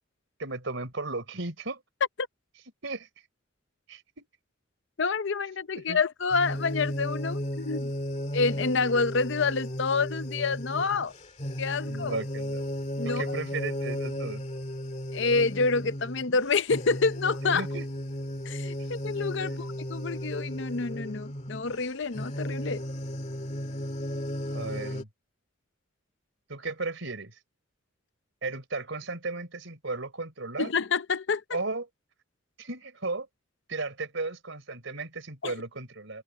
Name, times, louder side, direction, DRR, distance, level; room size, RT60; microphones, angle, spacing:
voice 1, 0.4-1.8 2.8-3.1 3.9-4.3 5.9-6.0 11.8-12.7 13.0-14.4 17.5-17.9 19.4-19.7 24.5-25.1 26.5-27.3 28.4-30.7 31.5-31.9 32.6-33.3 33.7-36.2, right 3 dB, 65° right, 4.3 m, -35 dB
voice 2, 5.0-7.9 8.3-11.1 11.6-12.2 13.0-13.2 15.1-17.7 18.5-22.8 30.6-31.4 35.4-35.5, left 4 dB, 60° left, 0.7 m, -28 dB
sound 1, 6.3-25.0, equal, 35° left, 2.2 m, -34 dB
head